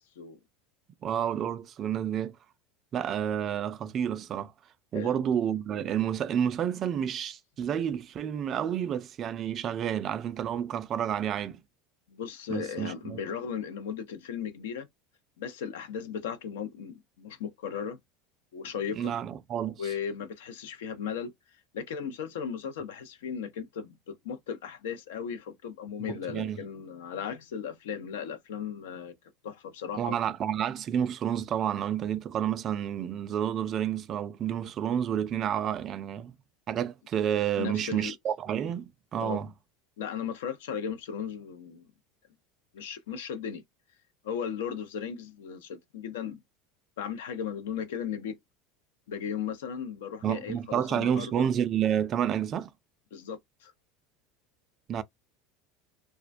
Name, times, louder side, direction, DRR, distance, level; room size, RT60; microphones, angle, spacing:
voice 1, 1.0-2.4 2.9-4.5 4.9-11.6 12.5-13.2 19.0-19.8 26.1-26.6 30.0-36.4 36.7-39.5 50.2-52.7 54.9-55.0, right 9 dB, 35° right, 0.3 m, -30 dB
voice 2, 4.9-5.3 12.1-14.9 15.4-18.0 18.5-19.2 19.8-21.3 21.7-29.1 29.4-30.2 37.6-38.1 39.2-39.4 40.0-41.9 42.7-43.6 44.2-46.4 47.0-48.4 49.1-51.5 53.1-53.7, left 7 dB, 90° left, 0.5 m, -36 dB
2.3 x 2.2 x 2.5 m
supercardioid pair, 125°, 0 cm